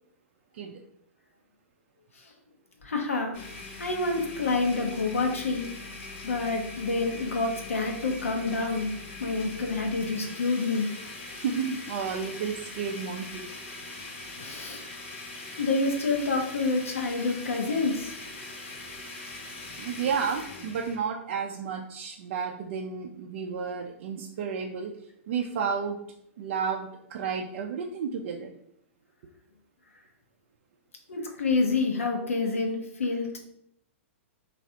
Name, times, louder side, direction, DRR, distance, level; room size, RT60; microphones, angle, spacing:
voice 1, 2.8-3.4 3.8-5.7 6.2-8.9 9.2-10.9 14.4-14.8 15.6-18.2 31.1-33.4, left 3 dB, 90° left, 3 dB, 0.6 m, -28 dB
Domestic sounds home sounds, 3.3-21.0, left 3 dB, 60° left, 0.9 m, -42 dB
voice 2, 11.3-13.5 18.9-19.1 19.8-26.0 26.4-28.5, right 6 dB, 60° right, 2 dB, 0.3 m, -32 dB
3.1 x 2.4 x 2.7 m, 0.75 s
hypercardioid pair, 115°, 7 cm